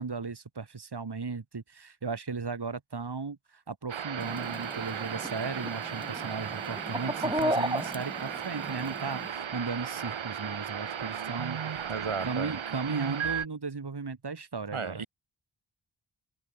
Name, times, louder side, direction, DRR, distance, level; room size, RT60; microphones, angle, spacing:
voice 1, 0.0-15.0, right 4 dB, 55° right, 2.1 m, -36 dB
sound 1, 3.9-13.5, right 8 dB, 70° right, 0.9 m, -36 dB
Chicken rooster, 4.2-9.3, right 1 dB, 10° right, 3.3 m, -35 dB
voice 2, 11.9-12.6 14.7-15.1, right 5 dB, 90° right, 2.5 m, -34 dB
wide cardioid pair, 45°, 48 cm